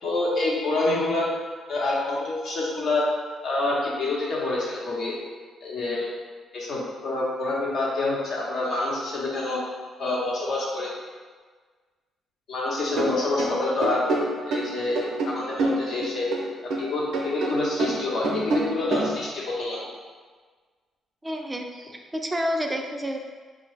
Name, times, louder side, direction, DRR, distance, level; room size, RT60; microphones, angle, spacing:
voice 1, 0.0-1.3 1.7-3.1 3.4-5.2 5.6-6.1 6.5-9.6 10.0-10.9 12.5-14.0 14.5-15.0 15.2-16.3 16.6-19.8, left 2 dB, 65° left, -5 dB, 0.9 m, -27 dB
sound 1, 12.9-16.9 17.1-19.2, right 2 dB, 80° right, 0.5 m, -27 dB
voice 2, 21.2-23.2, equal, 15° right, 2 dB, 0.4 m, -29 dB
3.8 x 2.1 x 3.2 m, 1.5 s
cardioid pair, 90°, 0 cm